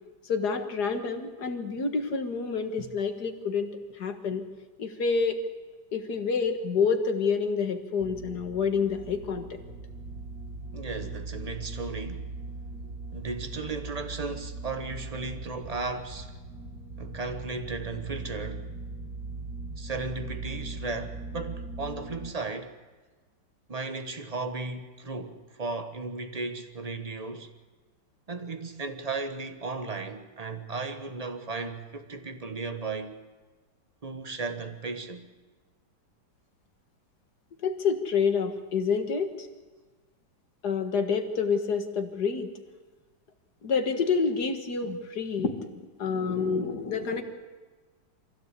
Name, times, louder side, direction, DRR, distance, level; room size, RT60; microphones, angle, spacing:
voice 1, 0.3-4.4 4.8-5.4 5.9-9.6 37.6-39.5 40.6-42.5 43.6-47.2, left 5 dB, 55° left, 2.0 m, -28 dB
sound 1, 8.0-22.3, right 3 dB, 55° right, 2.8 m, -40 dB
voice 2, 10.7-12.3 13.1-16.3 17.0-18.7 19.8-22.7 23.7-27.5 28.3-33.2 34.0-35.3, right 3 dB, 20° right, 1.2 m, -35 dB
23.5 x 16.0 x 8.3 m
omnidirectional pair, 2.1 m